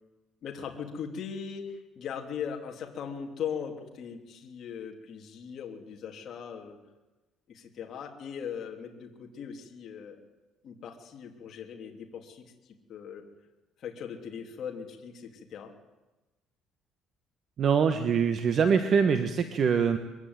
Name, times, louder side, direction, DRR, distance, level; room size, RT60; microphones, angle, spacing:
voice 1, 0.4-6.8 7.5-10.2 10.6-12.4 12.9-13.2 13.8-15.7, left 7 dB, 45° left, 2 dB, 2.9 m, -39 dB
voice 2, 17.6-20.0, right 6 dB, 40° right, 8 dB, 1.3 m, -24 dB
23.5 x 15.5 x 9.6 m, 1.1 s
cardioid pair, 160°, 0 cm